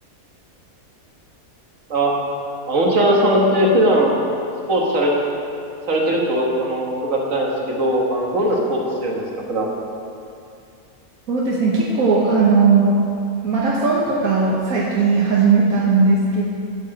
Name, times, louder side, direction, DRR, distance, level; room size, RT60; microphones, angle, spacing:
voice 1, 2.7-4.2 4.7-5.1 5.9-9.7, right 1 dB, 65° right, -2 dB, 1.8 m, -19 dB
voice 2, 11.3-12.9 13.4-16.4, right 4 dB, 80° right, -4 dB, 1.5 m, -17 dB
11.5 x 4.9 x 7.5 m, 2.5 s
omnidirectional pair, 1.5 m